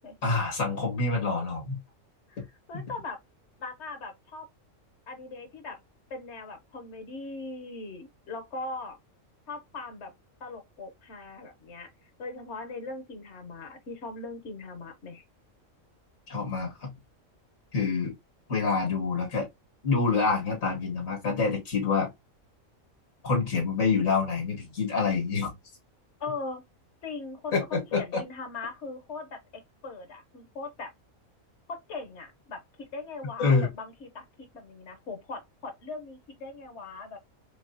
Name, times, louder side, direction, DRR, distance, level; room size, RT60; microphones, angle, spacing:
voice 1, 0.2-1.8 2.4-2.5 2.7-2.8 16.3-17.0 17.7-18.2 18.5-19.5 19.8-22.1 23.2-25.5 27.5-28.2 33.4-33.7, left 4 dB, 85° left, 2.0 m, -27 dB
voice 2, 2.3-3.2 3.6-4.5 5.1-5.8 6.1-9.0 9.5-10.1 10.4-15.2 26.2-26.6 27.0-30.9 31.7-37.2, left 3 dB, 60° left, 1.1 m, -40 dB
4.6 x 2.4 x 2.6 m
omnidirectional pair, 1.4 m